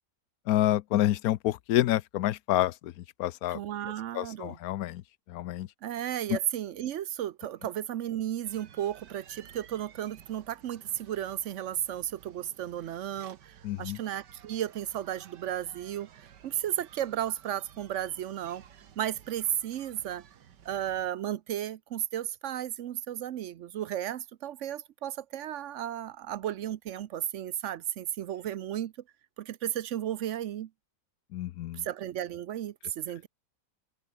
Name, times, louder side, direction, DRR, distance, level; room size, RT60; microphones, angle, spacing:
voice 1, 0.5-3.6 4.1-5.0 5.3-5.7 6.3-6.4 13.6-14.0 31.3-31.9, left 14 dB, 70° left, 1.0 m, -28 dB
voice 2, 3.5-4.6 5.8-18.6 19.0-20.2 20.6-28.9 29.4-30.7 31.7-33.3, right 11 dB, 65° right, 0.8 m, -34 dB
sound 1, 8.4-21.1, right 8 dB, 85° right, 2.0 m, -55 dB
open air
omnidirectional pair, 1.8 m